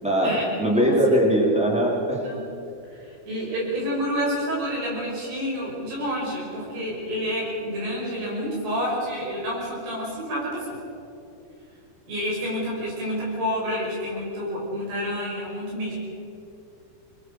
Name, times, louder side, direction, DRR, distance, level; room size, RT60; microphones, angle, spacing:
voice 1, 0.0-2.2, equal, ahead, -2 dB, 3.5 m, -21 dB
voice 2, 2.2-2.5 2.9-10.7 12.1-15.9, equal, 70° right, -4 dB, 7.8 m, -29 dB
26.0 x 21.0 x 6.7 m, 2.8 s
omnidirectional pair, 4.8 m